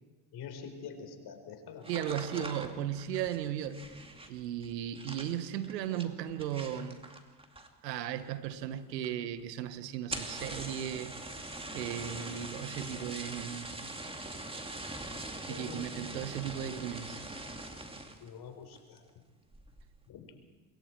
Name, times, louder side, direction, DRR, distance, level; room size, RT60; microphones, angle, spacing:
voice 1, 0.3-2.8 15.5-16.2 18.2-19.0 20.1-20.3, left 6 dB, 50° left, 6 dB, 4.5 m, -46 dB
sound 1, 1.8-7.9 8.2-8.7 9.0-9.1 9.4-9.5 10.0-18.3 18.7-19.1 19.5-19.9, right 2 dB, 10° right, 2.5 m, -43 dB
voice 2, 1.9-3.8 4.3-7.0 7.8-11.2 11.7-13.7 15.5-17.2, right 10 dB, 85° right, 11 dB, 1.4 m, -36 dB
27.5 x 22.0 x 4.7 m, 1.3 s
hypercardioid pair, 80°, 47 cm